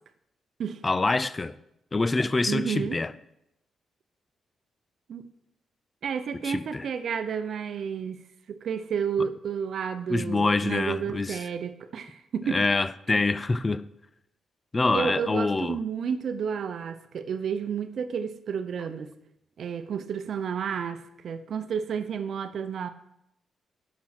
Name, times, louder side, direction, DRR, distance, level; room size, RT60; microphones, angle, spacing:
voice 1, 0.8-1.5 1.9-3.1 6.4-6.9 10.1-11.4 12.5-13.9 14.7-15.8, left 3 dB, 20° left, 0.4 m, -25 dB
voice 2, 2.5-3.0 5.1-5.2 6.0-12.6 13.1-13.2 14.9-19.1 19.6-22.9, right 7 dB, 60° right, 0.7 m, -31 dB
10.5 x 6.0 x 6.0 m
wide cardioid pair, 150°, 0 cm